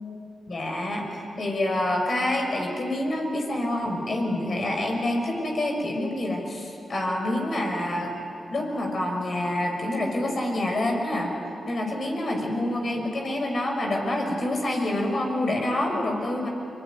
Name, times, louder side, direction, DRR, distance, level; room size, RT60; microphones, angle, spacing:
voice 1, 0.5-8.1 8.5-11.3 11.7-16.5, left 1 dB, 55° left, 2 dB, 6.4 m, -27 dB
24.0 x 23.0 x 9.7 m, 2.8 s
supercardioid pair, 40°, 0 cm